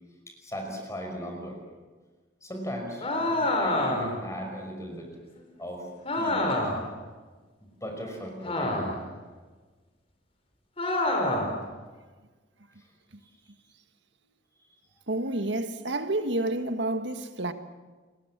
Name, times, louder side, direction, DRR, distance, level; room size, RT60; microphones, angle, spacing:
voice 1, 0.3-1.6 2.4-5.2 5.6-6.6 7.6-9.0 12.8-12.9 14.7-14.8, equal, 15° left, 5.4 m, -38 dB
sound 1, 3.0-4.2 6.0-6.9 8.4-9.1 10.8-11.6, left 1 dB, 35° left, 5.0 m, -27 dB
voice 2, 15.1-17.5, right 2 dB, 75° right, 1.8 m, -29 dB
29.5 x 23.0 x 7.5 m
head